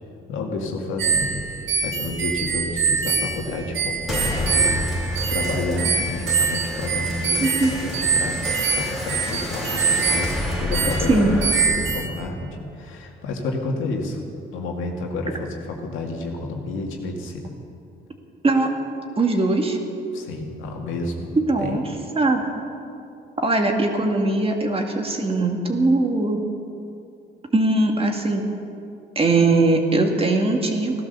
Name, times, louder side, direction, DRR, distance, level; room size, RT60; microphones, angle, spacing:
voice 1, 0.3-1.4 1.8-11.3 11.7-12.4 12.8-14.2 14.5-15.5 15.8-17.5 20.1-21.3 21.6-21.8, left 2 dB, 90° left, 1 dB, 2.2 m, -30 dB
sound 1, 1.0-12.1, right 5 dB, 80° right, 1.4 m, -24 dB
sound 2, 4.1-13.1, left 1 dB, ahead, 2.7 m, -30 dB
voice 2, 7.4-7.7 11.1-11.4 18.4-18.7 19.2-19.8 21.4-21.8 22.2-22.4 23.4-26.4 27.5-28.5 29.2-31.0, right 2 dB, 30° right, 3 dB, 2.1 m, -20 dB
16.0 x 12.0 x 6.9 m, 2.6 s
cardioid pair, 90°, 20 cm